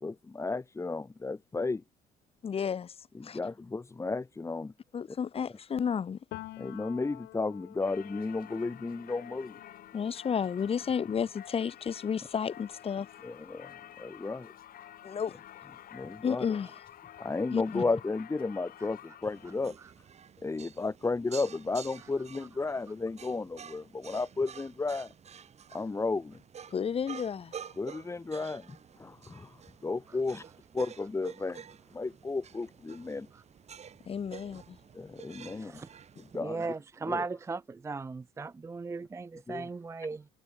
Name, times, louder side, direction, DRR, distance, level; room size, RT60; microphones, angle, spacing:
voice 1, 0.0-1.8 3.1-4.7 6.6-9.6 13.2-14.5 15.9-16.5 17.2-19.8 20.4-25.1 25.7-26.4 27.8-30.4 30.7-31.6 31.9-33.3 34.9-35.8 36.3-36.6 37.1-37.2 39.5-39.7, left 3 dB, 15° left, 1.3 m, -33 dB
voice 2, 2.4-2.9 3.2-3.4 4.9-6.2 9.9-13.1 15.0-15.4 16.2-16.7 17.5-17.8 26.7-27.5 34.1-34.8 36.2-36.3, left 7 dB, 35° left, 1.2 m, -32 dB
Piano, 6.3-13.9 14.3-15.8, left 16 dB, 80° left, 6.7 m, -51 dB
Singing / Church bell, 7.8-19.7, left 11 dB, 60° left, 2.2 m, -50 dB
sound 1, 19.2-36.4, right 7 dB, 40° right, 2.6 m, -50 dB
voice 3, 35.4-35.9 36.4-40.3, right 4 dB, 15° right, 0.5 m, -37 dB
cardioid pair, 110°, 17 cm